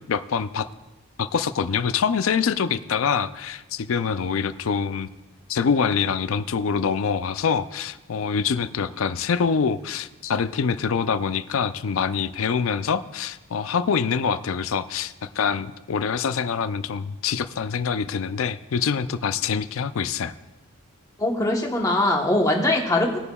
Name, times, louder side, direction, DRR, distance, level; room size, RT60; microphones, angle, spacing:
voice 1, 0.1-0.7 1.2-5.1 5.5-20.3, left 6 dB, 65° left, 13 dB, 0.4 m, -25 dB
voice 2, 21.2-23.2, left 1 dB, 15° left, 0 dB, 1.1 m, -21 dB
20.5 x 6.9 x 2.3 m, 1.1 s
head